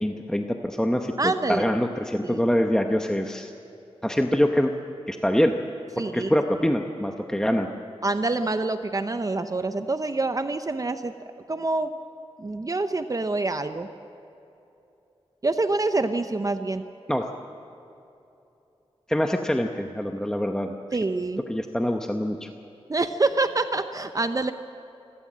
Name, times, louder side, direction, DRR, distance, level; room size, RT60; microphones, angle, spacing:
voice 1, 0.0-3.5 4.0-4.7 5.1-5.5 6.1-7.7 17.1-17.2 19.1-20.7 21.5-22.5, equal, 5° left, 4 dB, 0.9 m, -24 dB
voice 2, 1.2-1.6 2.3-2.4 6.0-6.3 8.0-11.1 11.5-11.9 12.4-13.9 15.4-16.8 20.9-21.4 22.9-24.5, right 3 dB, 35° right, 9 dB, 0.7 m, -26 dB
28.0 x 13.0 x 7.5 m, 2.9 s
wide cardioid pair, 80°, 10 cm